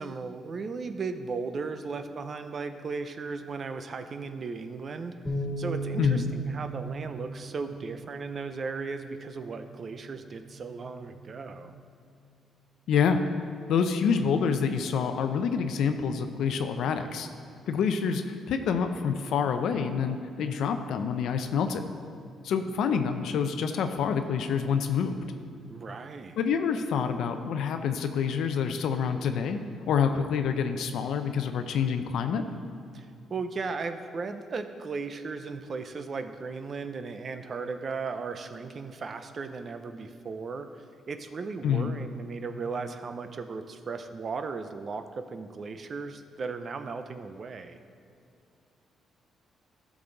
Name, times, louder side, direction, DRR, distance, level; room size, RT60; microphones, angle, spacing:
voice 1, 0.0-5.1 5.6-11.7 25.7-26.4 32.9-47.8, right 4 dB, 45° right, 9 dB, 0.6 m, -36 dB
sound 1, 5.3-11.5, right 2 dB, 20° left, 1.9 m, -38 dB
voice 2, 6.0-6.3 12.9-13.2 13.7-17.3 17.7-21.9 22.4-25.2 26.4-29.6 29.9-32.4 41.6-42.0, left 6 dB, 75° left, 7 dB, 0.6 m, -27 dB
12.5 x 6.1 x 3.9 m, 2.5 s
cardioid pair, 90°, 0 cm